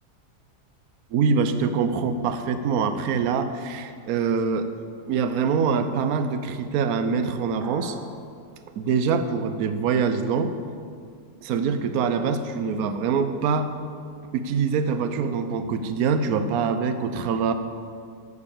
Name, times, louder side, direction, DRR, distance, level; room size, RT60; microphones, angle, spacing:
voice 1, 1.1-4.7 5.1-8.0 8.8-10.5 11.4-13.7 14.3-17.5, right 5 dB, 70° right, 9 dB, 1.1 m, -24 dB
sound 1, 7.6-8.2, right 1 dB, 85° right, 2.4 m, -41 dB
9.7 x 6.7 x 7.1 m, 2.2 s
omnidirectional pair, 1.7 m